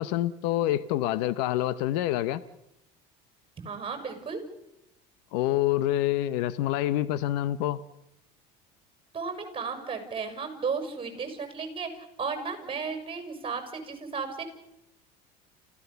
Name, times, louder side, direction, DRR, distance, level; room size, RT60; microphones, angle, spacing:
voice 1, 0.0-2.4 5.3-7.8, left 13 dB, 80° left, 16 dB, 1.0 m, -27 dB
voice 2, 3.6-4.4 9.1-14.4, right 5 dB, 25° right, 7 dB, 6.3 m, -34 dB
29.0 x 15.5 x 6.9 m, 0.86 s
supercardioid pair, 105°, 21 cm